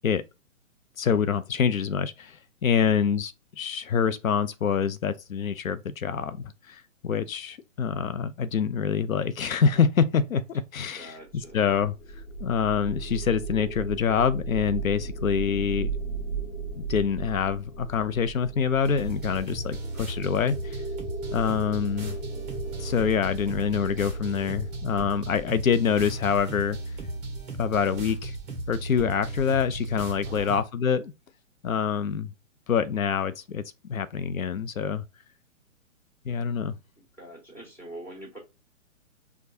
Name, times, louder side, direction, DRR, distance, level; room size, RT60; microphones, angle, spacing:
voice 1, 1.0-11.1 11.5-11.9 12.4-15.9 16.8-20.8 21.3-22.2 22.8-26.8 27.6-28.4 28.7-31.1 31.6-32.3 32.7-33.6 33.9-35.0 36.3-36.7, left 7 dB, 85° left, 0.5 m, -26 dB
voice 2, 2.7-3.0 11.0-11.7 30.2-30.5 37.2-38.4, right 1 dB, 5° left, 1.6 m, -44 dB
sound 1, 11.4-26.6, right 4 dB, 45° left, 0.8 m, -37 dB
sound 2, 18.8-30.6, right 2 dB, 15° right, 0.8 m, -35 dB
4.7 x 2.2 x 2.6 m
figure-of-eight pair, 135°, 40 cm